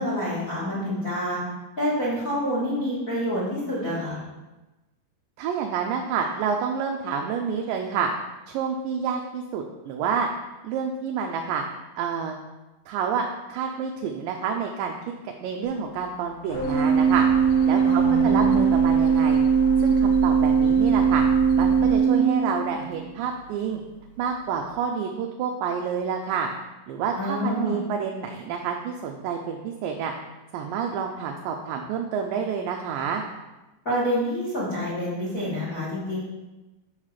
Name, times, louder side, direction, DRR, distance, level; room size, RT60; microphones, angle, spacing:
voice 1, 0.0-1.4 1.8-4.2 17.8-18.6 27.2-27.8 33.8-36.2, equal, 35° left, -8 dB, 1.4 m, -27 dB
voice 2, 5.4-8.1 8.5-10.3 10.6-11.6 12.0-12.3 12.9-14.9 15.2-17.3 17.7-19.4 19.8-21.3 21.6-23.8 24.2-26.5 26.9-30.1 30.5-33.2, right 6 dB, 80° right, 2 dB, 2.2 m, -28 dB
sound 1, 16.5-22.0, left 3 dB, 80° left, 2.4 m, -35 dB
Organ, 16.5-23.1, right 6 dB, 65° right, 2.4 m, -20 dB
6.4 x 5.8 x 4.7 m, 1.1 s
omnidirectional pair, 4.1 m